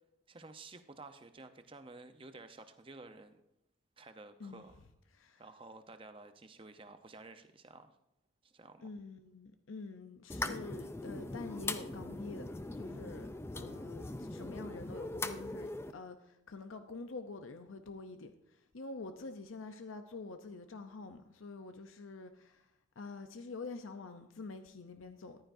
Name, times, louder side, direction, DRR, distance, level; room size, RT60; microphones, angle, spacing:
voice 1, 0.3-3.4 4.0-4.8 5.4-8.0 8.4-8.9, right 3 dB, 25° right, 0.7 m, -52 dB
voice 2, 5.1-5.4 8.8-22.7 23.0-25.4, left 3 dB, 85° left, 0.7 m, -47 dB
sound 1, 10.3-15.9, left 2 dB, 10° left, 0.4 m, -41 dB
14.5 x 11.5 x 2.6 m
head